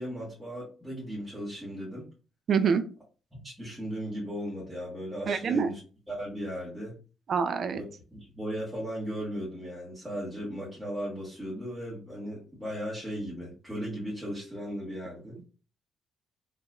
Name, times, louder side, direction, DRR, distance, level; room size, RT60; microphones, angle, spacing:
voice 1, 0.0-2.1 3.4-5.8 6.1-7.0 7.7-15.4, equal, 5° right, -8 dB, 1.8 m, -37 dB
voice 2, 2.5-2.8 5.3-5.7 7.3-7.8, right 6 dB, 55° right, 10 dB, 0.5 m, -25 dB
4.2 x 3.3 x 2.4 m, 0.36 s
cardioid pair, 90°, 0 cm